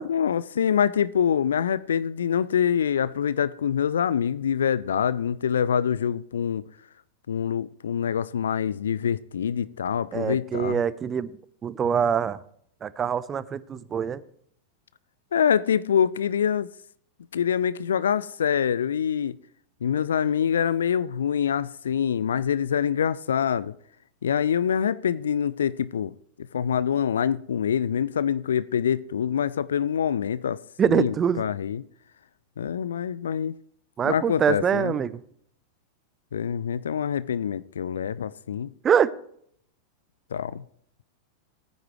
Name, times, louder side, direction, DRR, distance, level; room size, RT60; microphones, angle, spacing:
voice 1, 0.0-6.6 7.3-10.8 15.3-16.7 17.3-19.4 19.8-23.7 24.2-26.1 26.4-30.6 30.9-31.8 32.6-33.6 34.0-35.0 36.3-38.7 40.3-40.6, left 8 dB, 65° left, 0.4 m, -25 dB
voice 2, 10.1-11.3 11.6-12.4 12.8-14.2 30.8-31.4 34.0-35.2 38.8-39.1, right 8 dB, 25° right, 0.7 m, -24 dB
18.0 x 9.5 x 3.1 m
figure-of-eight pair, 90°, 0 cm